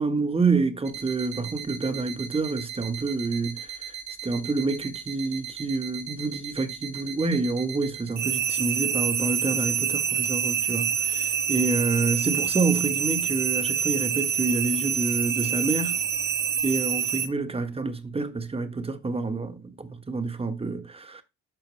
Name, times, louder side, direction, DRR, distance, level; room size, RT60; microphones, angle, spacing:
voice 1, 0.0-3.7 4.2-16.0 16.6-21.2, right 3 dB, 20° right, 1.4 m, -28 dB
sound 1, 0.9-17.3, right 7 dB, 65° right, 2.1 m, -28 dB
12.0 x 4.3 x 3.2 m
cardioid pair, 90°, 30 cm